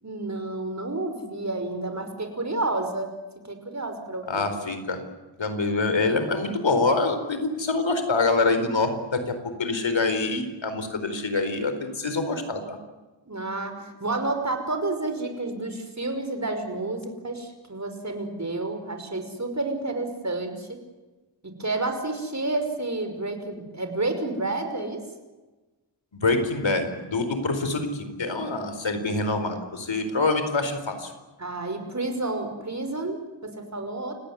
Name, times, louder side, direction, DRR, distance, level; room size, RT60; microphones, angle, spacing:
voice 1, 0.0-3.1 3.4-4.4 13.3-20.8 21.4-25.0 31.4-34.1, right 2 dB, 35° right, 6 dB, 5.6 m, -30 dB
voice 2, 4.2-5.0 5.4-12.8 26.1-31.1, left 3 dB, 75° left, 9 dB, 4.5 m, -25 dB
29.0 x 17.5 x 9.8 m, 1.2 s
wide cardioid pair, 75°, 45 cm